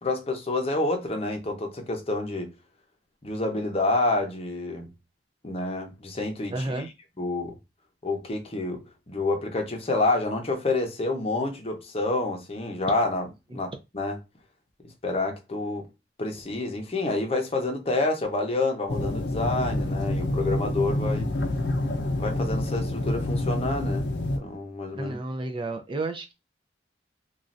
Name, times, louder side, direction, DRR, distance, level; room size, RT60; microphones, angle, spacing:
voice 1, 0.0-2.5 3.2-4.9 5.4-6.8 7.2-7.6 8.0-13.3 13.5-14.2 15.0-15.9 16.2-21.3 22.2-24.0 24.4-25.2, left 2 dB, 35° left, 0.7 m, -28 dB
voice 2, 6.5-6.9 13.5-13.6 24.9-26.3, right 2 dB, 30° right, 0.4 m, -31 dB
sound 1, 18.9-24.4, left 1 dB, 70° left, 0.6 m, -27 dB
3.1 x 2.4 x 2.5 m
head